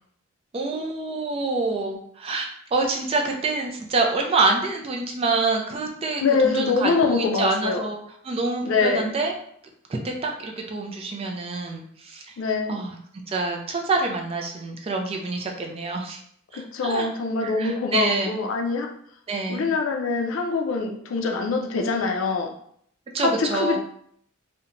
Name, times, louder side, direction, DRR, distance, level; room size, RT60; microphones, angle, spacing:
voice 1, 0.5-8.0 8.2-9.3 9.9-12.4 12.7-13.0 13.3-16.2 16.5-17.1 17.4-18.4 19.3-19.7 23.1-23.8, right 3 dB, 30° right, 2 dB, 0.3 m, -26 dB
voice 2, 6.2-7.8 8.6-9.1 12.4-12.8 16.5-18.9 19.5-22.5 23.2-23.8, left 4 dB, 70° left, 3 dB, 0.4 m, -24 dB
2.8 x 2.1 x 2.5 m, 0.66 s
head